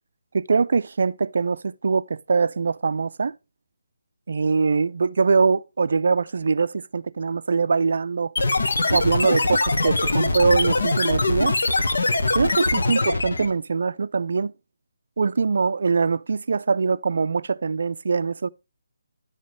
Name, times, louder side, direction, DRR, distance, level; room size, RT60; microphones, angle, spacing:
voice 1, 0.3-3.3 4.3-8.3 8.9-11.6 12.3-14.5 15.2-18.5, right 4 dB, 50° right, 0.5 m, -23 dB
sound 1, 8.4-13.5, left 3 dB, 65° left, 1.6 m, -22 dB
10.5 x 6.4 x 3.2 m
hypercardioid pair, 175°, 0 cm